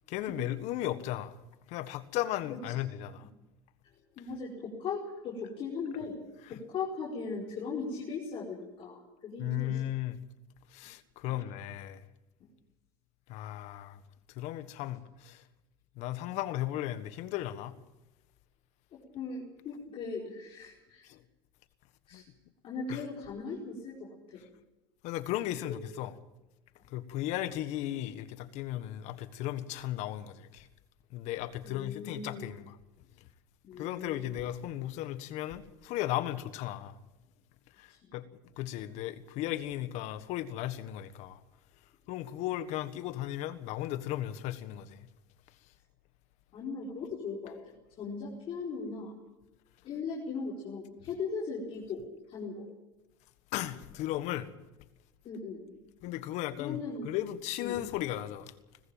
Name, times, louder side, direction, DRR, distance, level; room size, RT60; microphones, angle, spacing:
voice 1, 0.1-1.3 1.7-3.2 6.5-6.6 9.4-10.2 10.7-12.0 13.3-14.0 14.3-15.4 16.0-17.7 21.1-21.2 22.1-22.2 22.9-23.0 25.0-26.1 26.9-30.7 31.1-32.8 33.8-36.9 37.8-38.2 38.6-41.4 42.1-45.0 53.5-54.5 56.0-56.8 57.0-58.5, left 13 dB, 65° left, 1.5 m, -36 dB
voice 2, 4.2-6.2 6.5-9.8 11.3-11.4 19.1-21.1 22.1-22.2 22.6-24.4 25.6-25.7 31.6-32.5 33.6-34.4 46.5-47.5 48.0-49.1 49.8-52.0 52.3-52.6 55.2-55.7 56.6-57.1 57.6-57.8, left 4 dB, 45° left, 4.8 m, -38 dB
19.5 x 15.0 x 9.1 m
supercardioid pair, 115°, 13 cm